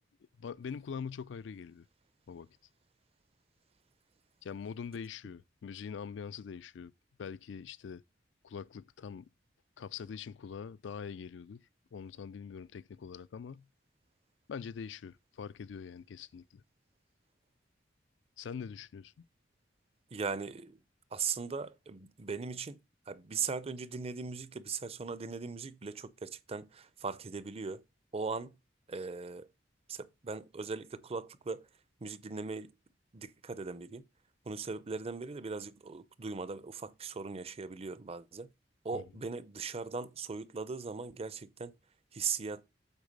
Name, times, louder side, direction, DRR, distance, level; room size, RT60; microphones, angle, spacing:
voice 1, 0.4-1.8 2.3-2.5 4.4-6.9 7.2-8.0 8.4-9.3 9.8-11.6 11.9-13.7 14.5-16.6 18.4-19.2 38.9-39.1, left 6 dB, 75° left, 0.4 m, -43 dB
voice 2, 20.1-20.8 21.1-22.8 23.1-27.8 28.1-28.5 28.9-29.5 29.9-31.6 32.0-32.7 33.1-34.0 34.5-38.5 38.8-41.7 42.1-42.6, right 5 dB, 35° right, 0.6 m, -39 dB
8.2 x 4.7 x 5.2 m
head